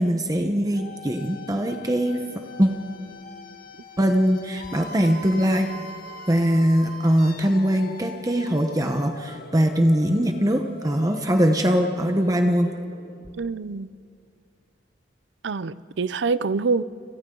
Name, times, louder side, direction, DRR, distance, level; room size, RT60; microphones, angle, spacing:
voice 1, 0.0-2.2 2.6-2.7 4.0-5.7 6.3-12.7, equal, 20° right, 5 dB, 1.1 m, -21 dB
sound 1, 0.7-13.5, left 2 dB, 55° left, 1.6 m, -42 dB
voice 2, 13.4-13.9 15.4-16.8, right 4 dB, 75° right, 17 dB, 0.6 m, -25 dB
30.0 x 27.0 x 3.9 m, 2.3 s
head